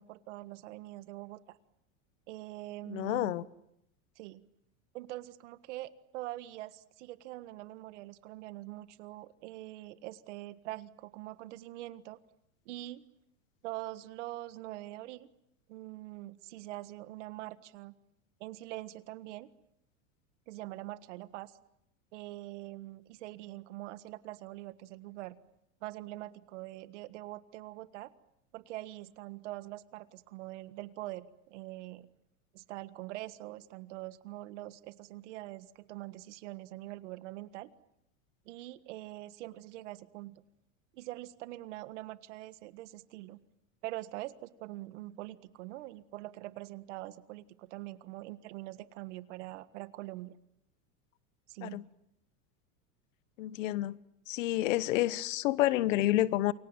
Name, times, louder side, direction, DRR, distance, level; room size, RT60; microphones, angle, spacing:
voice 1, 0.0-1.6 2.3-3.5 4.2-4.4 4.9-12.2 12.6-13.1 13.6-15.3 15.7-17.9 18.4-19.5 20.5-21.5 22.1-25.3 25.8-28.1 28.5-32.1 32.5-37.7 38.4-40.4 40.9-43.4 43.8-50.4 51.5-51.8, right 17 dB, 60° right, 1.6 m, -44 dB
voice 2, 2.9-3.4 51.6-51.8 53.4-54.0 54.3-56.5, left 15 dB, 70° left, 1.2 m, -29 dB
28.5 x 23.5 x 8.9 m
supercardioid pair, 175°, 40 cm